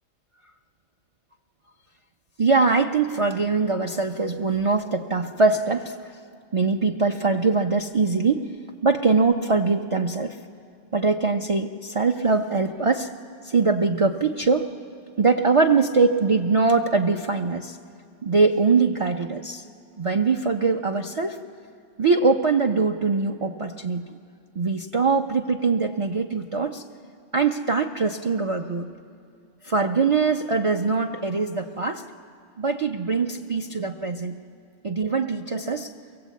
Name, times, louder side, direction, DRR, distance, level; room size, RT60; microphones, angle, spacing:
voice 1, 2.4-6.0 6.5-8.5 8.8-10.4 10.9-13.1 13.4-14.7 15.2-17.8 18.2-19.6 20.0-21.4 22.0-24.0 24.6-26.8 27.3-28.9 29.6-32.0 32.6-34.3 34.8-35.9, right 4 dB, 45° right, 3 dB, 0.4 m, -22 dB
23.5 x 16.5 x 8.3 m, 2.3 s
omnidirectional pair, 1.4 m